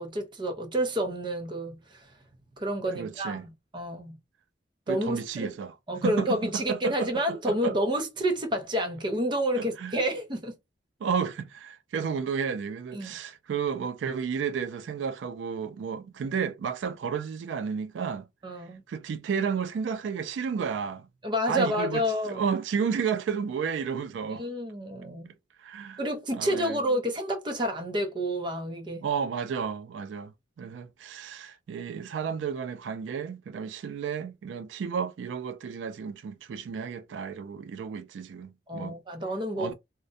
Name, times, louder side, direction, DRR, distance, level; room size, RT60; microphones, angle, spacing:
voice 1, 0.0-2.1 2.6-4.2 4.9-5.5 5.9-10.6 12.9-13.2 18.4-18.8 21.2-22.4 24.4-25.3 26.0-29.1 38.7-39.7, equal, 25° right, 0.6 m, -29 dB
voice 2, 3.0-3.4 4.9-5.7 6.0-6.3 6.5-7.1 7.5-7.7 9.6-9.9 11.0-18.3 18.9-21.1 21.5-24.4 25.6-26.0 26.3-26.8 29.0-39.0 39.6-39.7, right 6 dB, 90° right, 0.3 m, -32 dB
2.4 x 2.1 x 2.6 m
head